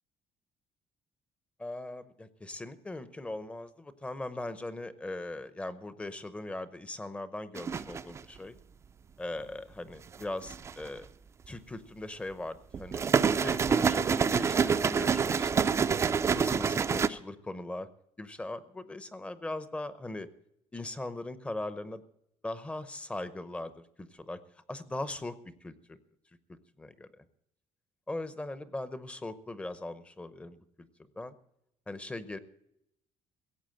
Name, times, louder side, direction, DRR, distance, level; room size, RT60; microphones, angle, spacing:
voice 1, 1.6-8.6 9.2-11.1 11.5-13.0 13.3-16.0 16.3-17.9 18.2-20.3 20.7-22.0 22.4-24.4 24.7-26.0 26.5-27.2 28.1-30.9 31.2-31.4 31.9-32.4, left 2 dB, 10° left, 13 dB, 0.8 m, -40 dB
sound 1, 7.5-8.2 10.1-10.9 12.7-17.1, right 6 dB, 25° right, 0.5 m, -27 dB
17.0 x 8.0 x 7.7 m, 0.77 s
cardioid pair, 165°, 11 cm